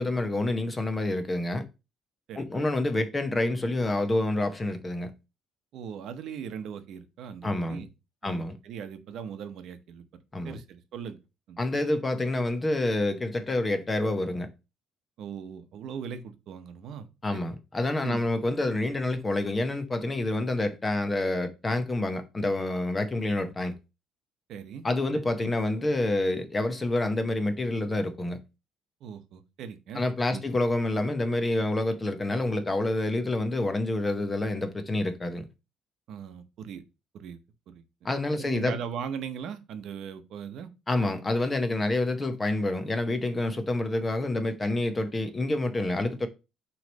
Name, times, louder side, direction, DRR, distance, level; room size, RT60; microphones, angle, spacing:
voice 1, 0.0-1.6 2.4-5.1 7.4-7.8 8.2-8.5 10.3-10.6 11.6-14.5 17.2-23.7 24.8-28.4 29.9-35.5 38.0-38.7 40.9-46.3, left 2 dB, 15° left, 0.7 m, -28 dB
voice 2, 2.3-2.7 5.7-7.9 8.2-10.0 10.4-11.2 11.5-11.6 15.2-17.5 18.0-18.3 24.5-24.9 25.4-25.5 29.0-30.0 30.3-30.4 36.1-36.8 37.1-37.4 37.7-37.8 38.3-40.7, right 7 dB, 60° right, 0.8 m, -39 dB
6.2 x 3.2 x 5.2 m
cardioid pair, 155°, 0 cm